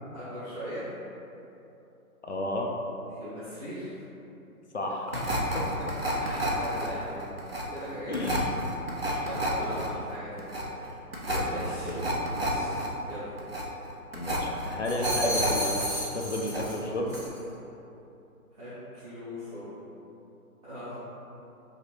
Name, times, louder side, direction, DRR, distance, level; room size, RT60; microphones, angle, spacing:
voice 1, 0.1-0.9 3.1-4.0 5.8-7.3 7.7-8.3 9.2-10.9 11.5-12.0 12.3-12.8 13.1-13.3 18.5-19.8 20.6-21.0, equal, 30° right, -16 dB, 1.1 m, -40 dB
voice 2, 2.2-2.7 4.7-5.3 5.5-5.7 8.1-8.5 9.0-9.3 9.6-9.8 11.3-12.1 14.1-15.8 16.1-17.1, left 1 dB, 50° left, 0 dB, 0.5 m, -32 dB
sound 1, 5.1-15.9 16.2-16.9 17.1-17.3, right 1 dB, 45° right, 0.5 m, -31 dB
sound 2, 14.8-16.8 17.1-17.4, equal, 5° left, 1.0 m, -33 dB
5.1 x 2.2 x 4.3 m, 2.9 s
hypercardioid pair, 175°, 44 cm